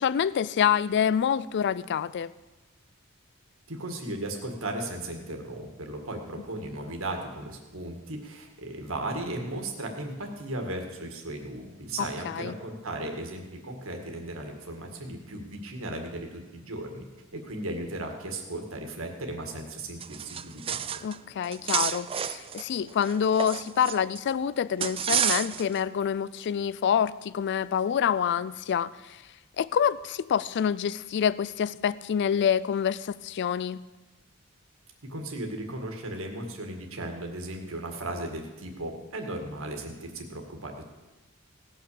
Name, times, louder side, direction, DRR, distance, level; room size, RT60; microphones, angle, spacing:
voice 1, 0.0-2.3 12.0-12.5 21.0-29.2 29.6-33.8, left 8 dB, 55° left, 18 dB, 0.3 m, -27 dB
voice 2, 3.7-17.0 17.3-20.8 35.0-40.8, right 1 dB, 70° right, 3 dB, 1.9 m, -36 dB
sound 1, 20.0-21.2 21.4-24.2 24.8-25.8, right 8 dB, 25° right, 0.3 m, -30 dB
17.5 x 5.9 x 6.9 m, 1.2 s
head